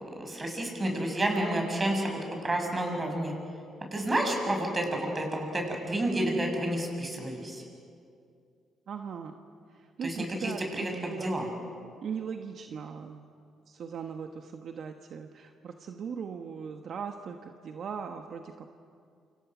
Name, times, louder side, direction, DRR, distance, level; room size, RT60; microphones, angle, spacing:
voice 1, 0.2-2.2 2.4-3.3 3.9-7.6 10.0-11.5, right 1 dB, 25° right, 2 dB, 7.0 m, -30 dB
voice 2, 8.9-9.3 9.8-11.3 12.0-13.2 13.7-18.8, right 6 dB, 60° right, 5 dB, 1.3 m, -39 dB
28.5 x 27.5 x 6.2 m, 2.3 s
cardioid pair, 90°, 0 cm